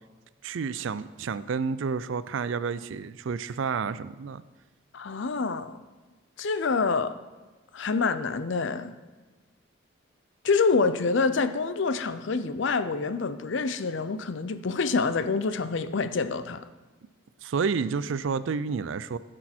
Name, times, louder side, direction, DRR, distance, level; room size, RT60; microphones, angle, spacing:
voice 1, 0.4-4.4 17.4-19.2, right 5 dB, 65° right, 16 dB, 0.4 m, -30 dB
voice 2, 4.9-5.8 6.4-7.2 7.7-8.9 10.4-16.7, left 4 dB, 60° left, 12 dB, 0.5 m, -26 dB
15.5 x 6.2 x 4.4 m, 1.3 s
head